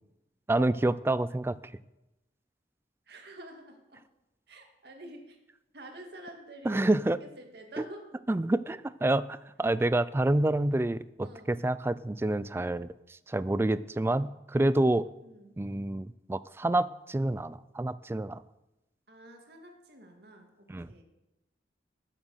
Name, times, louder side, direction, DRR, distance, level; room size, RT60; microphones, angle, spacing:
voice 1, 0.5-1.6 6.6-7.2 7.8-7.9 8.3-15.1 15.6-18.4 20.7-20.9, right 1 dB, 15° right, 16 dB, 0.3 m, -28 dB
voice 2, 3.1-4.0 4.5-5.4 5.7-8.1 11.2-11.6 14.0-14.3 15.2-15.6 19.1-21.0, right 1 dB, 60° right, 3 dB, 2.3 m, -49 dB
14.0 x 7.4 x 6.4 m, 0.95 s
head